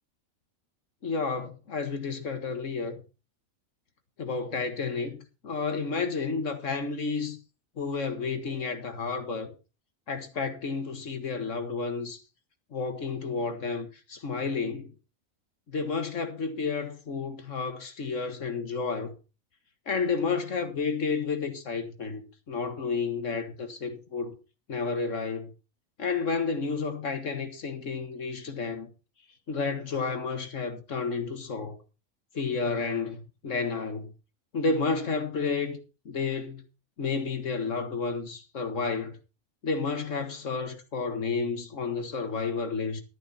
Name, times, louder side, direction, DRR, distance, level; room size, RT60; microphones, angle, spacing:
voice 1, 1.0-3.0 4.2-5.2 5.4-7.4 7.8-9.5 10.1-12.2 12.7-14.9 15.7-19.1 19.9-24.3 24.7-25.5 26.0-28.9 29.5-31.8 32.3-34.1 34.5-35.8 36.1-36.6 37.0-39.2 39.6-43.0, left 4 dB, 60° left, 1.9 m, -31 dB
12.0 x 10.5 x 4.3 m
omnidirectional pair, 1.5 m